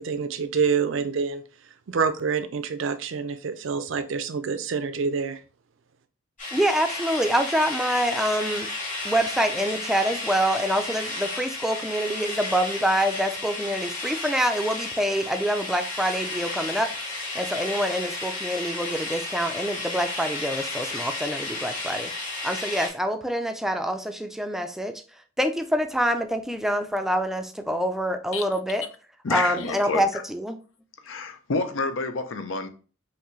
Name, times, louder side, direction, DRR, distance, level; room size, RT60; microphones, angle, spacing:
voice 1, 0.0-1.4 1.9-5.4, right 5 dB, 70° right, 0.5 m, -27 dB
sound 1, 6.4-22.9, left 2 dB, 40° left, 2.4 m, -33 dB
voice 2, 6.5-8.7 9.0-16.9 17.3-22.1 22.4-24.9 25.4-28.8 29.3-30.6, equal, ahead, 0.4 m, -26 dB
voice 3, 29.2-30.2 31.0-32.7, left 3 dB, 75° left, 0.6 m, -29 dB
5.8 x 2.7 x 3.2 m
head